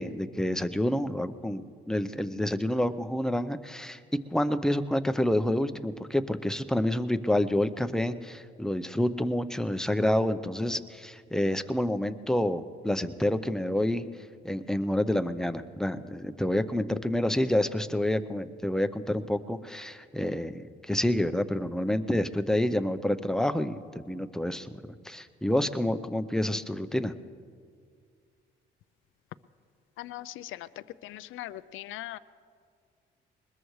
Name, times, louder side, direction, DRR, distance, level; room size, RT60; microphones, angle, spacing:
voice 1, 0.0-1.6 1.9-4.0 4.3-14.1 14.4-27.1, left 1 dB, 5° left, 10 dB, 0.7 m, -28 dB
voice 2, 30.0-30.5 31.1-32.2, left 15 dB, 85° left, 15 dB, 0.4 m, -40 dB
21.5 x 20.5 x 3.2 m, 2.2 s
cardioid pair, 90°, 20 cm